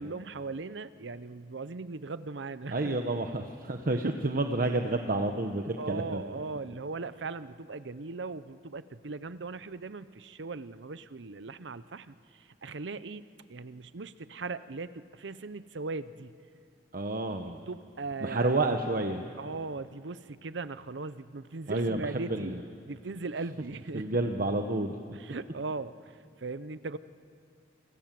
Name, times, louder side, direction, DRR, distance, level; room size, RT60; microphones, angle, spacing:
voice 1, 0.0-3.0 3.9-4.0 5.8-16.3 17.4-18.6 19.4-22.6 22.9-24.1 25.1-27.0, right 3 dB, 85° right, 14 dB, 0.7 m, -39 dB
voice 2, 2.7-6.2 16.9-17.6 18.2-19.2 21.7-22.6 23.9-24.9, right 2 dB, 55° right, 5 dB, 1.1 m, -29 dB
29.0 x 25.0 x 7.6 m, 2.4 s
head